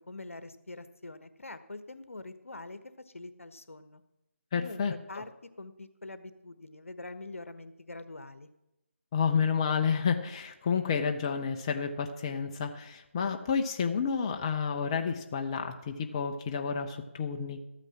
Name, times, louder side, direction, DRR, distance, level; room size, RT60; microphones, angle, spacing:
voice 1, 0.1-2.8 3.0-4.0 4.6-5.3 5.6-8.5, left 2 dB, 80° left, 11 dB, 1.1 m, -44 dB
voice 2, 4.5-4.9 9.1-17.6, left 6 dB, 20° left, 5 dB, 0.6 m, -30 dB
13.5 x 9.0 x 6.0 m, 0.95 s
figure-of-eight pair, 160°, 7 cm